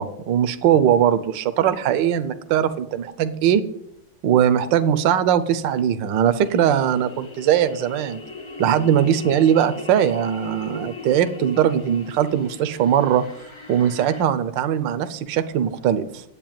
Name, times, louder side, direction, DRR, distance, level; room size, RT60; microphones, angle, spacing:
voice 1, 0.0-3.6 4.2-8.2 8.6-13.2 13.7-16.2, right 9 dB, 70° right, 11 dB, 1.4 m, -20 dB
sound 1, 6.4-14.2, left 3 dB, 25° left, 0.6 m, -39 dB
9.2 x 8.2 x 8.7 m, 0.77 s
omnidirectional pair, 2.2 m